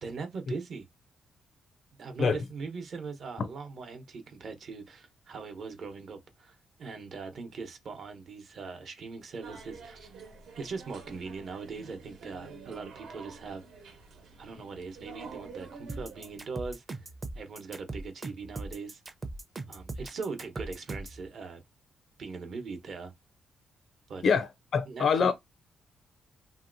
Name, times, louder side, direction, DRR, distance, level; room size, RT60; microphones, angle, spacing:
voice 1, 0.0-0.8 2.0-10.1 10.6-13.6 14.4-17.0 17.3-19.0 19.7-21.6 22.2-23.1 24.1-24.2 24.9-25.3, right 4 dB, 55° right, 0.9 m, -40 dB
sound 1, 9.4-16.4, right 4 dB, 80° right, 1.1 m, -48 dB
sound 2, 15.9-21.2, right 2 dB, 30° right, 0.6 m, -39 dB
voice 2, 24.2-25.3, left 6 dB, 55° left, 0.4 m, -25 dB
3.0 x 2.8 x 2.6 m
cardioid pair, 115°, 0 cm